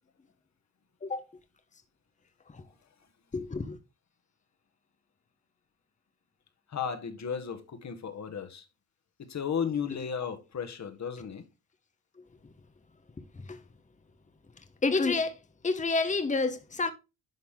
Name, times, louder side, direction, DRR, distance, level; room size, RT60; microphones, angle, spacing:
voice 1, 3.3-3.8 13.3-13.6 14.8-15.4 15.6-16.9, left 3 dB, 20° left, 1.2 m, -29 dB
voice 2, 6.7-8.6 9.2-11.4, left 7 dB, 45° left, 1.7 m, -34 dB
11.0 x 4.2 x 3.8 m
cardioid pair, 75°, 37 cm